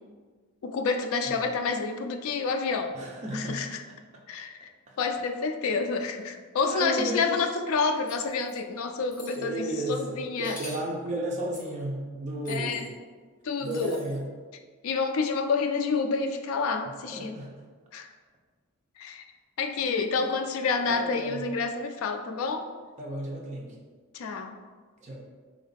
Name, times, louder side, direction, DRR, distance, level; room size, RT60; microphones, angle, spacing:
voice 1, 0.6-3.0 3.3-3.8 4.3-4.7 5.0-10.6 12.5-12.9 13.4-14.0 14.8-17.4 17.9-18.1 19.0-19.2 19.6-22.7 24.1-24.6, left 4 dB, 65° left, 6 dB, 0.3 m, -29 dB
voice 2, 2.9-3.7 6.7-7.4 9.3-12.9 13.6-14.3 17.1-17.6 20.9-21.5 23.0-23.7 25.0-25.2, right 1 dB, 30° right, -2 dB, 0.5 m, -33 dB
sound 1, 8.1-8.6 9.1-9.4 10.4-10.9 11.5-11.7 12.4-12.9 13.6-14.2, left 1 dB, 35° left, 1.0 m, -45 dB
3.4 x 2.4 x 3.9 m, 1.5 s
head